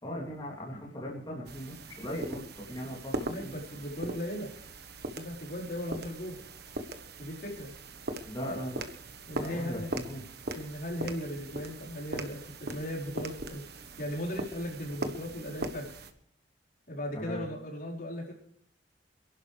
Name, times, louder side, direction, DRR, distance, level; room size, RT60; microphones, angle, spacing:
voice 1, 0.0-3.5 8.3-8.8 9.4-10.2 17.1-17.5, equal, 25° left, -6 dB, 3.1 m, -38 dB
sound 1, 1.5-16.1, right 2 dB, 60° right, 1.3 m, -40 dB
voice 2, 3.3-4.5 5.1-6.4 7.2-7.7 9.3-9.9 10.5-15.9 16.9-18.3, equal, 55° left, -3 dB, 4.8 m, -37 dB
27.0 x 11.5 x 3.5 m, 0.66 s
head